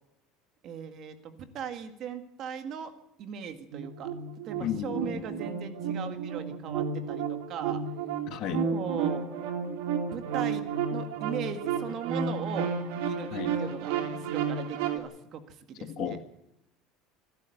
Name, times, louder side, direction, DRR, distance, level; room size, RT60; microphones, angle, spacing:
voice 1, 0.6-2.9 3.2-4.1 4.5-7.8 8.7-9.2 10.1-13.9 14.2-16.2, right 7 dB, 35° right, 8 dB, 1.8 m, -39 dB
sound 1, 3.7-15.0, right 6 dB, 75° right, 2.7 m, -32 dB
voice 2, 4.6-5.2 8.3-8.6 13.3-13.5 15.8-16.2, left 10 dB, 45° left, 9 dB, 1.5 m, -34 dB
25.5 x 12.0 x 9.2 m, 0.86 s
cardioid pair, 170°, 0 cm